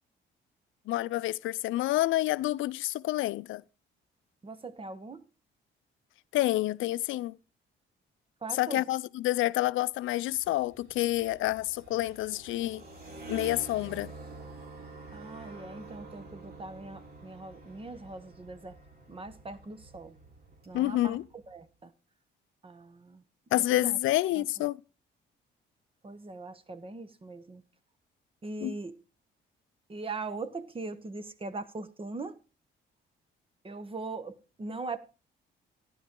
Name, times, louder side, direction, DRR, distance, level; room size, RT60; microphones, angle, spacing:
voice 1, 0.9-3.6 6.3-7.4 8.5-12.8 13.3-14.1 20.7-21.3 23.5-24.8 28.6-28.8, left 16 dB, 80° left, 0.4 m, -28 dB
voice 2, 4.4-5.2 8.4-8.8 15.1-18.7 19.1-20.2 20.7-21.2 21.5-21.9 22.6-23.2 23.5-24.0 24.4-24.5 26.0-27.6 28.4-28.9 29.9-32.4 33.6-35.0, right 3 dB, 25° right, 1.0 m, -40 dB
sound 1, 10.0-21.6, right 3 dB, 50° right, 3.2 m, -48 dB
12.0 x 10.5 x 3.7 m
cardioid pair, 90°, 20 cm